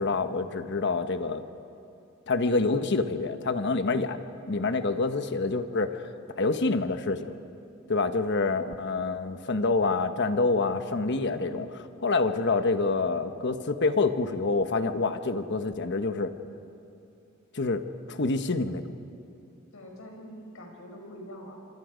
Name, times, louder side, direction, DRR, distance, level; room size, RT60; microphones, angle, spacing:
voice 1, 0.0-1.4 2.3-4.2 4.5-6.1 6.4-7.3 7.9-16.3 17.5-17.8 18.1-18.8, left 3 dB, 55° left, 9 dB, 1.1 m, -27 dB
voice 2, 19.7-21.6, equal, 75° left, 2 dB, 4.8 m, -44 dB
26.5 x 24.5 x 5.1 m, 2.7 s
head